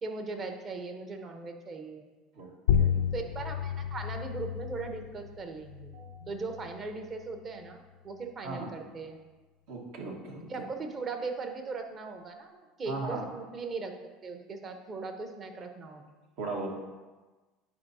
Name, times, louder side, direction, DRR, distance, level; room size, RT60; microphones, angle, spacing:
voice 1, 0.0-2.1 3.1-5.9 6.3-9.2 10.4-13.9 14.2-16.1, right 4 dB, 40° right, 5 dB, 1.0 m, -39 dB
sound 1, 2.7-7.7, left 8 dB, 85° left, 0.3 m, -32 dB
voice 2, 9.7-10.5 12.9-13.3 16.4-16.7, right 3 dB, 70° right, 0 dB, 1.4 m, -37 dB
9.6 x 4.8 x 2.8 m, 1.2 s
hypercardioid pair, 80°, 0 cm